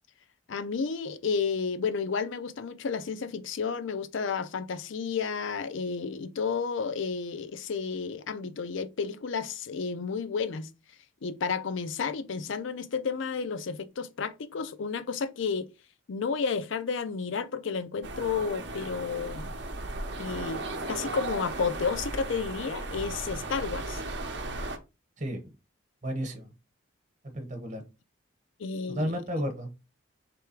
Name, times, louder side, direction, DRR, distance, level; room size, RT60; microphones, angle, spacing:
voice 1, 0.5-10.7 11.2-15.7 16.1-19.5 20.2-20.6 20.9-24.0 28.6-29.2, left 5 dB, 70° left, 0.5 m, -31 dB
sound 1, 18.0-24.8, right 2 dB, 55° right, 0.7 m, -36 dB
voice 2, 26.0-26.4 27.2-27.8 28.9-29.7, equal, 35° right, 1.1 m, -32 dB
3.5 x 3.3 x 4.6 m
head